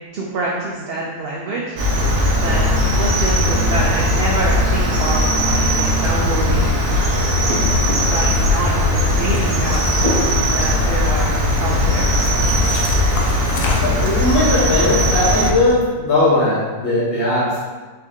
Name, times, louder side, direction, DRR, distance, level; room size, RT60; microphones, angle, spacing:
voice 1, 0.1-1.8 2.4-6.8 8.0-12.1, right 2 dB, 60° right, -4 dB, 0.7 m, -26 dB
Cricket, 1.8-15.5, left 1 dB, 85° right, 1.2 m, -18 dB
sound 1, 6.8-15.5, equal, 30° left, 0.8 m, -32 dB
sound 2, 8.2-8.6 9.1-10.6 10.9-11.5 12.2-14.1, left 3 dB, 85° left, 1.0 m, -30 dB
voice 2, 13.8-17.6, left 2 dB, 55° left, -8 dB, 1.3 m, -18 dB
4.5 x 2.6 x 3.6 m, 1.3 s
omnidirectional pair, 1.4 m